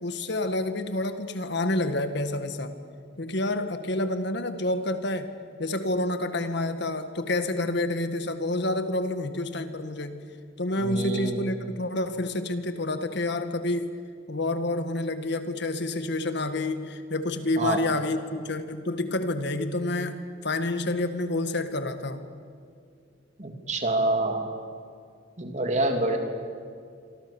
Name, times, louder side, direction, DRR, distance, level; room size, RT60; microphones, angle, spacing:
voice 1, 0.0-2.7 3.2-5.3 5.6-10.2 10.6-13.9 14.3-22.2, left 2 dB, 65° left, 9 dB, 1.7 m, -28 dB
voice 2, 10.8-11.4 17.6-17.8 23.4-24.5 25.4-26.2, right 2 dB, 40° right, 4 dB, 3.1 m, -27 dB
27.0 x 24.5 x 7.1 m, 2.2 s
head